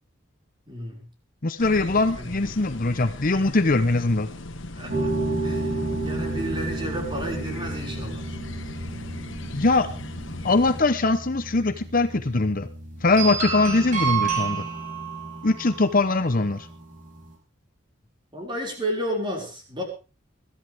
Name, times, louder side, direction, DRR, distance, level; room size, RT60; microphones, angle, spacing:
voice 1, 0.7-1.1 2.2-2.4 4.7-5.2 5.4-8.3 18.3-19.8, equal, 25° right, 0 dB, 5.7 m, -32 dB
voice 2, 1.4-4.3 9.5-9.9 10.4-12.7 13.0-14.7 15.4-16.7, left 3 dB, 45° left, 8 dB, 0.9 m, -22 dB
sound 1, 1.6-10.8, left 2 dB, 65° left, 1.6 m, -38 dB
sound 2, 4.9-17.3, right 3 dB, 40° right, 6.0 m, -31 dB
22.0 x 13.5 x 3.6 m, 0.34 s
head